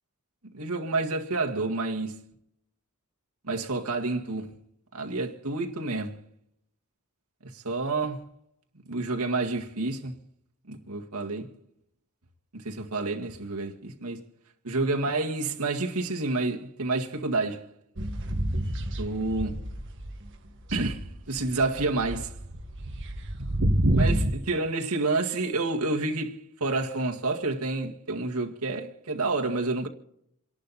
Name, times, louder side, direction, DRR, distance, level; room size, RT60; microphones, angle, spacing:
voice 1, 0.5-2.2 3.4-4.5 4.9-6.2 7.4-8.2 8.9-10.2 10.7-11.5 12.5-14.2 14.6-17.7 19.0-19.6 20.7-22.3 23.9-29.9, right 3 dB, 85° right, 2.0 m, -29 dB
sound 1, 18.0-20.3 20.6-24.3, right 1 dB, 60° right, 1.8 m, -28 dB
28.5 x 11.5 x 4.2 m
head